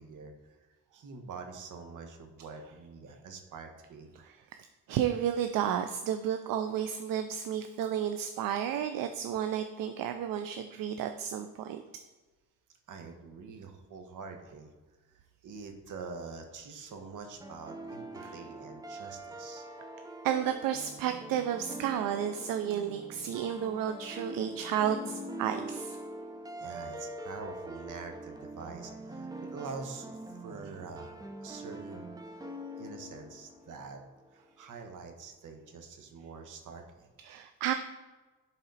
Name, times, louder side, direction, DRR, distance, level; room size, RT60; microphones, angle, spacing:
voice 1, 0.0-4.1 12.9-14.7 15.1-19.7 26.6-32.1 32.8-34.0 34.3-37.1, right 4 dB, 65° right, 5 dB, 1.4 m, -45 dB
voice 2, 4.9-11.8 18.2-18.3 20.2-26.0 37.2-37.7, right 9 dB, 80° right, 8 dB, 0.5 m, -32 dB
sound 1, 17.4-34.3, right 1 dB, 10° right, 0.7 m, -43 dB
11.0 x 4.2 x 4.1 m, 1.3 s
cardioid pair, 95°, 33 cm